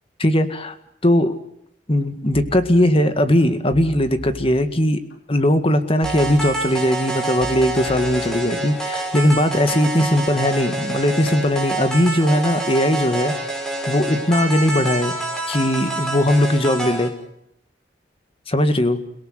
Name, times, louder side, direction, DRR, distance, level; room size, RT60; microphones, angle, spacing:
voice 1, 0.2-0.8 1.0-1.4 1.9-5.0 5.3-13.3 13.9-15.2 15.5-17.1 18.5-19.0, left 1 dB, 30° left, 9 dB, 1.9 m, -19 dB
sound 1, 2.3-3.3 3.7-5.2 6.0-7.0 7.4-8.9 9.3-9.6, equal, 75° left, 4.8 m, -39 dB
sound 2, 6.0-17.1, right 2 dB, 5° left, 5.9 m, -27 dB
29.5 x 18.0 x 7.8 m, 0.77 s
head